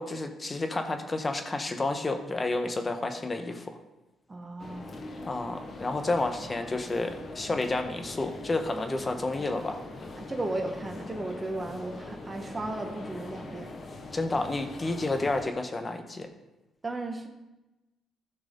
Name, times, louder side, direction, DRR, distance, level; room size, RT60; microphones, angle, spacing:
voice 1, 0.0-3.7 5.2-9.8 14.1-16.3, left 2 dB, 25° left, 6 dB, 1.3 m, -30 dB
voice 2, 4.3-5.1 10.2-13.7 16.8-17.3, right 2 dB, 25° right, 4 dB, 1.6 m, -35 dB
sound 1, 4.6-15.5, left 2 dB, 45° left, 1.3 m, -42 dB
15.0 x 6.3 x 3.9 m, 1.0 s
cardioid pair, 90°, 0 cm